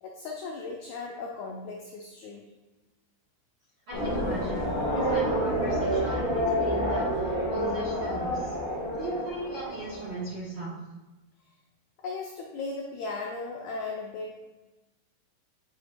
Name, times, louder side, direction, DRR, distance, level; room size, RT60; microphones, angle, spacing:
voice 1, 0.0-2.4 11.5-11.6 12.0-14.3, left 3 dB, 85° left, 0 dB, 1.6 m, -37 dB
sound 1, 3.9-10.2, equal, 50° left, 1.0 m, -28 dB
voice 2, 3.9-8.5 8.9-10.7, right 1 dB, 70° right, -9 dB, 1.2 m, -37 dB
9.0 x 4.6 x 2.5 m, 1.1 s
omnidirectional pair, 4.0 m